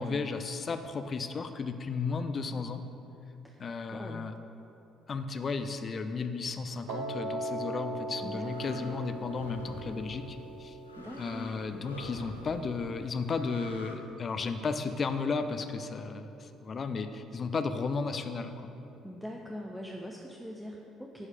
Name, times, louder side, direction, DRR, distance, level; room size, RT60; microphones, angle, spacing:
voice 1, 0.0-2.8 3.6-4.3 5.1-10.8 11.2-18.7, left 4 dB, 35° left, 8 dB, 0.6 m, -34 dB
voice 2, 3.9-4.2 8.2-8.9 11.0-11.5 19.0-21.3, equal, 5° right, -1 dB, 0.7 m, -42 dB
Piano, 6.9-13.0, right 1 dB, 65° right, 0.7 m, -40 dB
sound 1, 7.9-14.0, left 1 dB, 85° left, 0.6 m, -48 dB
9.9 x 4.8 x 5.7 m, 3.0 s
figure-of-eight pair, 50°, 0 cm